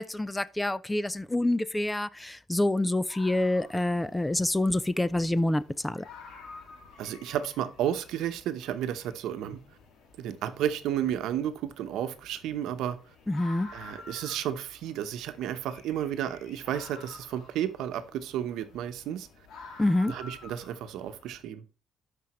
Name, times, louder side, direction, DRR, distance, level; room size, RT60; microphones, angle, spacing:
voice 1, 0.0-6.1 13.3-13.7 19.8-20.1, left 1 dB, 10° left, 0.5 m, -27 dB
sound 1, 3.0-21.4, left 3 dB, 80° left, 2.1 m, -51 dB
voice 2, 7.0-9.6 10.2-13.0 13.7-19.3 20.1-21.6, right 10 dB, 85° right, 0.9 m, -32 dB
12.5 x 5.3 x 3.1 m
cardioid pair, 90°, 0 cm